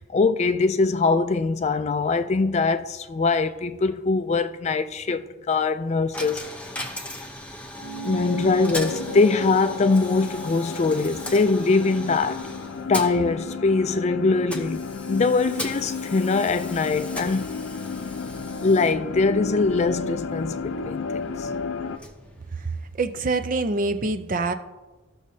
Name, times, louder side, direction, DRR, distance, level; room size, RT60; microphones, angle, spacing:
voice 1, 0.0-6.4 8.0-12.4 12.9-17.6 18.6-21.5, left 3 dB, 35° left, 0.4 m, -22 dB
Coin (dropping), 6.1-23.1, left 1 dB, 5° left, 0.7 m, -39 dB
sound 1, 7.8-12.6, right 1 dB, 80° right, 0.9 m, -38 dB
sound 2, 8.9-22.0, left 5 dB, 85° left, 0.6 m, -33 dB
voice 2, 23.0-24.5, right 3 dB, 45° right, 0.5 m, -25 dB
14.5 x 6.2 x 2.7 m
head